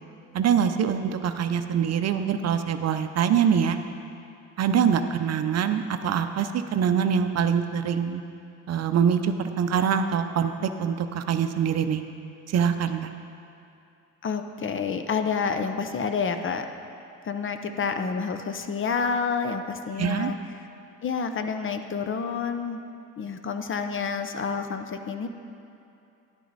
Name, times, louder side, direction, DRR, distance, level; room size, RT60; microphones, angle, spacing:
voice 1, 0.3-3.8 4.6-8.2 8.7-12.0 12.5-13.1 20.0-20.3, right 7 dB, 50° right, 9 dB, 0.6 m, -24 dB
voice 2, 14.2-16.7 17.2-20.4 21.0-22.8 23.2-25.3, left 5 dB, 40° left, 7 dB, 0.7 m, -29 dB
11.0 x 9.2 x 4.1 m, 2.7 s
cardioid pair, 85°, 33 cm